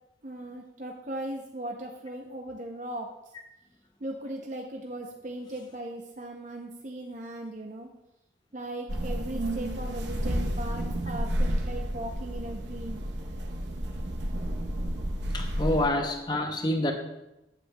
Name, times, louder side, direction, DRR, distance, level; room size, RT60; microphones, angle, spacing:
voice 1, 0.2-3.2 4.0-7.9 8.5-13.0, right 1 dB, 45° right, 1 dB, 0.6 m, -38 dB
sound 1, 8.9-15.9, equal, 85° right, 0.9 m, -31 dB
voice 2, 15.3-16.9, left 1 dB, 25° left, 5 dB, 0.6 m, -27 dB
8.2 x 8.2 x 2.2 m, 0.92 s
head